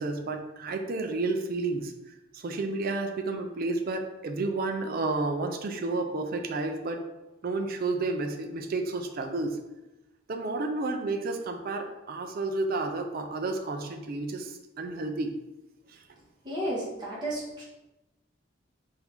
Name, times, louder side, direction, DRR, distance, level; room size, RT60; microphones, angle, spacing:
voice 1, 0.0-1.9 2.3-7.0 7.4-9.6 10.3-15.4, right 3 dB, 45° right, 5 dB, 0.4 m, -31 dB
voice 2, 16.4-17.6, right 1 dB, 20° right, -8 dB, 1.4 m, -32 dB
3.9 x 2.6 x 4.4 m, 1.0 s
head